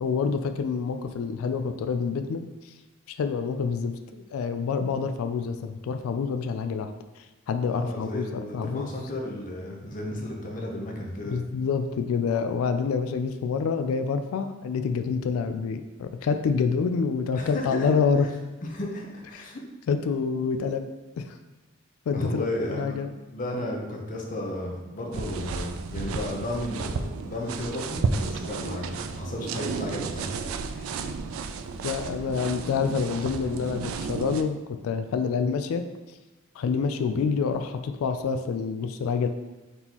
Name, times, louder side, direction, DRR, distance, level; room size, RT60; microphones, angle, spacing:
voice 1, 0.0-2.4 3.1-6.9 7.2-8.9 11.3-18.3 19.3-19.5 19.9-20.8 21.2-21.3 22.1-23.1 31.8-35.8 36.6-39.3, left 5 dB, 90° left, 8 dB, 0.3 m, -27 dB
voice 2, 7.6-11.4 17.4-17.9 18.7-19.6 22.1-22.8 23.3-31.0, left 1 dB, 40° left, 0 dB, 0.7 m, -33 dB
sound 1, 25.1-34.4, right 5 dB, 80° right, 0.3 m, -33 dB
4.1 x 3.6 x 2.9 m, 1.2 s
head